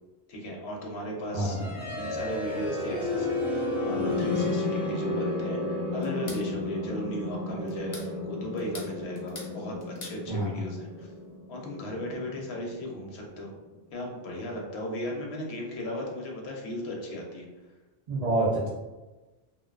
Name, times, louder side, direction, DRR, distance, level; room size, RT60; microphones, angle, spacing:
voice 1, 0.3-1.6 1.9-11.1 11.5-13.5 13.9-17.5, left 1 dB, 80° left, 0 dB, 0.8 m, -36 dB
voice 2, 1.3-1.7 10.3-10.6 18.1-18.7, right 2 dB, 45° right, -7 dB, 0.6 m, -27 dB
sound 1, 1.4-13.3, left 2 dB, ahead, 0.7 m, -32 dB
sound 2, 6.0-6.5 7.7-8.1 8.6-9.5 9.8-10.2, left 2 dB, 40° left, 0.5 m, -43 dB
2.5 x 2.2 x 2.3 m, 1.2 s
omnidirectional pair, 1.1 m